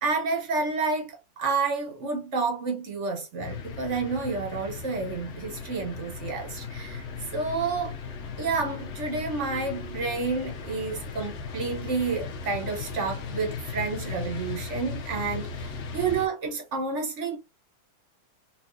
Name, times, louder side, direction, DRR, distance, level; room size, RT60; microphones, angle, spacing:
voice 1, 0.0-7.1 7.3-7.9 8.4-17.4, right 4 dB, 45° right, 1.0 m, -30 dB
sound 1, 3.4-16.3, left 5 dB, 85° left, 0.6 m, -37 dB
4.2 x 2.7 x 2.7 m
omnidirectional pair, 2.3 m